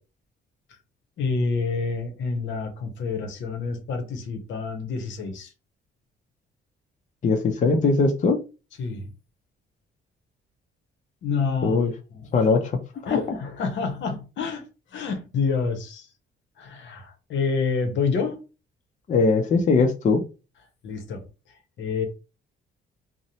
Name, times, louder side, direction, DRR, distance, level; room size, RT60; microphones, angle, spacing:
voice 1, 1.2-5.5 8.8-9.1 11.2-12.5 13.0-16.1 16.6-18.4 20.8-22.0, left 4 dB, 70° left, 0.7 m, -28 dB
voice 2, 7.2-8.4 11.6-11.9 12.3-12.8 19.1-20.2, left 4 dB, 40° left, 0.5 m, -20 dB
2.5 x 2.0 x 2.8 m
cardioid pair, 90°, 20 cm